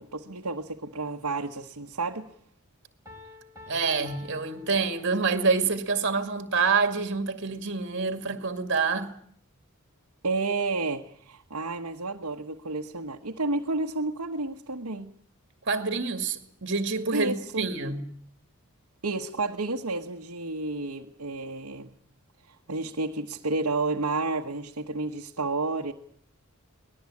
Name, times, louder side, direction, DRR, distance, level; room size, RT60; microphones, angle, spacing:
voice 1, 0.0-2.3 10.2-15.1 17.1-17.7 19.0-21.9 22.7-25.9, right 3 dB, 80° right, 1.3 m, -31 dB
Piano, 3.1-5.6, left 3 dB, 15° right, 3.8 m, -49 dB
voice 2, 3.7-9.1 15.7-18.0, right 4 dB, 55° right, 2.2 m, -27 dB
23.5 x 19.5 x 8.5 m
head